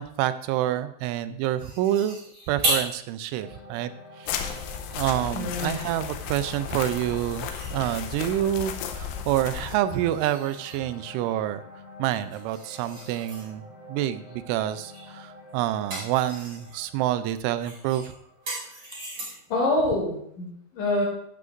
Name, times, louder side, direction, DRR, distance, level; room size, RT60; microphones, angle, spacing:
voice 1, 0.0-2.2 2.5-3.9 4.2-4.6 4.9-11.6 12.0-13.6 13.9-18.1, right 12 dB, 85° right, 12 dB, 2.9 m, -27 dB
sound 1, 1.6-3.0 3.5-3.6 4.1-5.4 6.9-8.1 9.7-10.9 12.1-13.5 14.9-15.2 15.5-16.8 17.6-19.6, right 1 dB, 30° right, 5.6 m, -35 dB
sound 2, 3.4-19.7, left 1 dB, 20° left, 5.3 m, -48 dB
sound 3, 4.3-9.8, left 8 dB, 85° left, 3.2 m, -34 dB
voice 2, 5.3-5.7 19.5-21.0, left 2 dB, 50° left, -2 dB, 3.5 m, -26 dB
12.0 x 12.0 x 2.5 m, 0.71 s
omnidirectional pair, 5.5 m